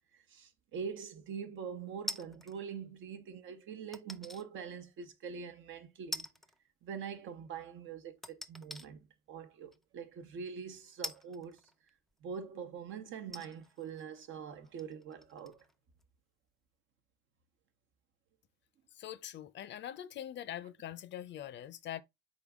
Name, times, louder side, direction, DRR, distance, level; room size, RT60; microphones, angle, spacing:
voice 1, 0.3-6.3 6.8-11.6 12.2-15.6, right 6 dB, 80° right, 0.9 m, -44 dB
sound 1, 2.1-2.6 3.9-4.4 5.0-5.1 6.1-6.6 6.8-6.9 8.2-8.9 9.7-9.8 11.0-12.1 12.8-12.9 13.3-15.7 16.0-16.1, left 1 dB, ahead, 0.4 m, -44 dB
voice 2, 19.0-22.0, left 11 dB, 65° left, 0.5 m, -43 dB
4.0 x 3.7 x 3.5 m
cardioid pair, 90°, 20 cm